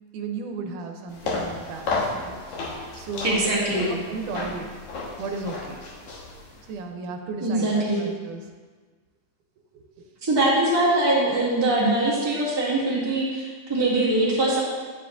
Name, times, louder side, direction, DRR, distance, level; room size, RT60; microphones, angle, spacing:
voice 1, 0.1-2.5 3.0-3.4 3.7-3.8 4.1-4.7 5.2-5.9 6.7-8.4 9.7-9.8, right 4 dB, 85° right, 4 dB, 2.2 m, -34 dB
sound 1, 1.1-6.7, left 3 dB, 70° left, 2.7 m, -33 dB
voice 2, 3.2-3.9 7.4-8.0 10.2-14.6, right 2 dB, 10° right, -8 dB, 1.6 m, -22 dB
9.3 x 9.2 x 2.6 m, 1.5 s
omnidirectional pair, 3.5 m